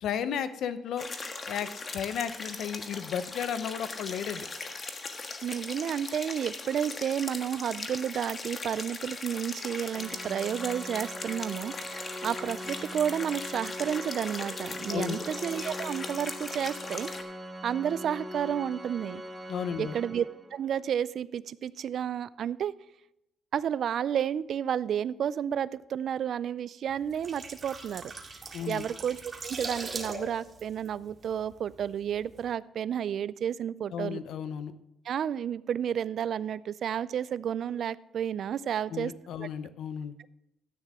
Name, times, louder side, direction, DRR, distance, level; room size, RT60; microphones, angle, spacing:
voice 1, 0.0-1.1 1.5-4.5 14.9-15.2 19.5-19.9 28.5-28.8 33.9-34.7 38.9-40.1, left 8 dB, 75° left, 13 dB, 0.7 m, -34 dB
sound 1, 1.0-17.2, left 3 dB, 40° left, 1.4 m, -39 dB
voice 2, 5.4-17.1 17.6-19.2 19.8-20.3 20.5-22.7 23.5-28.1 28.7-34.2 35.1-39.1 39.4-39.5, right 9 dB, 65° right, 18 dB, 0.4 m, -31 dB
Organ, 9.9-20.7, equal, 15° right, 1.6 m, -42 dB
sound 2, 27.0-31.8 32.1-32.3, right 3 dB, 35° right, 2.0 m, -40 dB
13.0 x 9.4 x 3.6 m, 0.86 s
cardioid pair, 90°, 0 cm